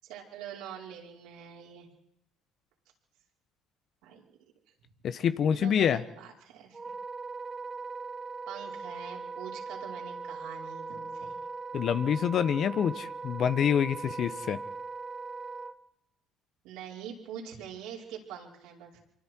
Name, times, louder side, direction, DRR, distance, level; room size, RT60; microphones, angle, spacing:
voice 1, 0.0-1.9 4.0-4.2 5.5-6.9 8.5-11.3 16.6-19.0, right 8 dB, 80° right, -2 dB, 5.3 m, -44 dB
voice 2, 5.0-6.0 11.7-14.6, left 8 dB, 55° left, 12 dB, 1.3 m, -26 dB
Wind instrument woodwind instrument, 6.7-15.7, right 4 dB, 25° right, 0.9 m, -40 dB
25.0 x 23.5 x 4.7 m, 0.84 s
supercardioid pair, 85°, 0 cm